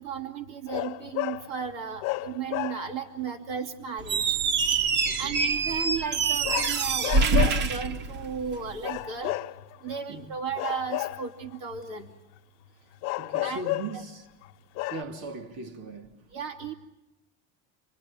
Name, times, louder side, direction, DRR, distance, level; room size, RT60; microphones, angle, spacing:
voice 1, 0.0-4.4 5.2-9.4 9.8-12.1 13.4-13.6 16.3-16.7, right 6 dB, 80° right, 2.7 m, -34 dB
sound 1, 0.7-1.5 2.0-3.1 6.4-7.7 8.8-9.9 10.6-11.6 13.0-14.0 14.5-14.6 14.8-15.0, left 18 dB, 60° left, 0.9 m, -32 dB
Squeak, 4.0-8.7, right 4 dB, 35° right, 0.9 m, -25 dB
voice 2, 5.0-5.4 10.1-10.3 13.2-14.3 14.9-16.2, right 3 dB, 55° right, 3.3 m, -39 dB
28.5 x 20.5 x 8.9 m
cardioid pair, 165°, 30 cm